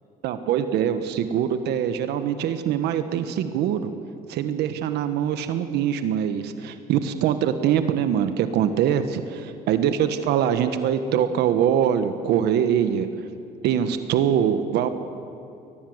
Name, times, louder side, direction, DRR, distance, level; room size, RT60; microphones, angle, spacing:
voice 1, 0.2-3.9 4.3-13.1 13.6-14.9, right 9 dB, 80° right, 9 dB, 1.4 m, -23 dB
22.5 x 19.5 x 8.0 m, 2.6 s
cardioid pair, 110°, 17 cm